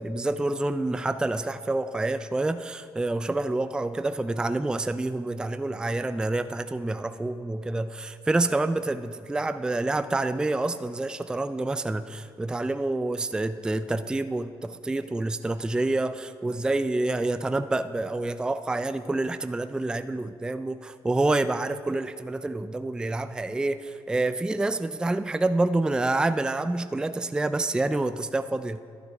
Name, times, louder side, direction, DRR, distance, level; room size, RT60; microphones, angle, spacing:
voice 1, 0.0-28.8, right 2 dB, 10° right, 12 dB, 0.3 m, -27 dB
11.5 x 9.2 x 3.4 m, 2.2 s
supercardioid pair, 75°, 10 cm